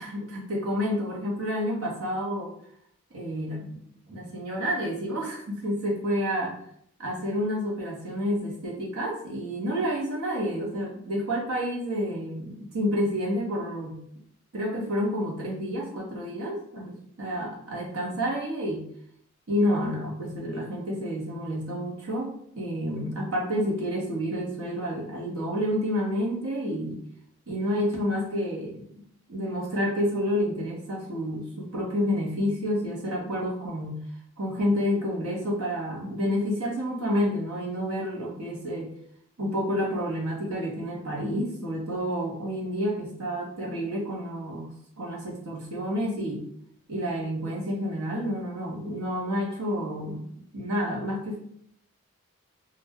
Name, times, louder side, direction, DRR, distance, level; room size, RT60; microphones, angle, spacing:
voice 1, 0.0-2.5 3.1-6.6 7.0-14.0 14.5-18.9 19.5-27.0 27.5-28.9 29.3-34.0 34.4-38.9 39.4-46.5 46.9-51.4, equal, 85° right, -3 dB, 0.9 m, -29 dB
2.4 x 2.1 x 3.5 m, 0.66 s
head